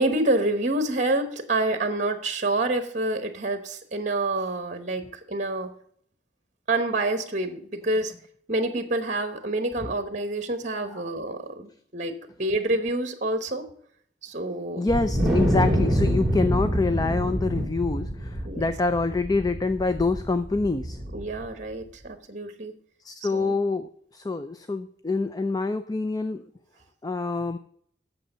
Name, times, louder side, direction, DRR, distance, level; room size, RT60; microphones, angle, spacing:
voice 1, 0.0-5.7 6.7-8.1 8.5-13.7 14.2-14.9 18.4-18.6 21.1-22.7 23.3-23.5, right 2 dB, 40° right, 8 dB, 1.0 m, -27 dB
voice 2, 14.8-21.0 23.0-26.4 27.0-27.6, left 3 dB, 20° left, 10 dB, 0.4 m, -26 dB
Wind, 14.9-21.4, equal, 5° right, 2.6 m, -26 dB
8.5 x 7.1 x 5.5 m, 0.63 s
head